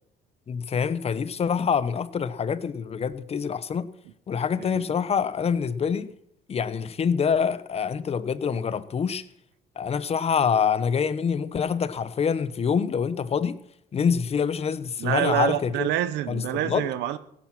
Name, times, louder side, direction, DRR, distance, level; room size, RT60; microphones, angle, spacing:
voice 1, 0.5-3.9 4.3-6.1 6.5-9.2 9.8-13.6 13.9-15.9 16.3-16.9, left 6 dB, 40° left, 1.0 m, -26 dB
voice 2, 15.0-17.2, right 13 dB, 85° right, 1.1 m, -27 dB
17.0 x 10.5 x 6.0 m
cardioid pair, 110°, 17 cm